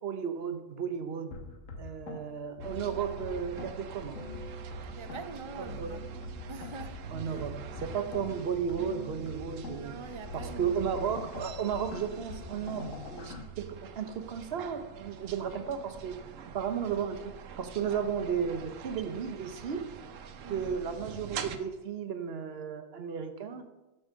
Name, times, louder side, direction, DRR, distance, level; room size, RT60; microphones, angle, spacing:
voice 1, 0.0-1.4 1.8-4.2 5.8-6.0 7.1-10.0 10.3-16.2 16.5-19.9 20.5-23.6, right 7 dB, 60° right, 8 dB, 1.0 m, -34 dB
sound 1, 1.3-13.4, left 1 dB, 85° left, 1.4 m, -43 dB
sound 2, 2.6-21.6, right 7 dB, 85° right, 1.1 m, -46 dB
voice 2, 4.9-6.0 6.5-7.4 8.0-8.1 9.6-10.9 20.4-20.7, right 4 dB, 40° right, 8 dB, 0.4 m, -44 dB
7.9 x 6.5 x 5.0 m, 1.1 s
omnidirectional pair, 1.3 m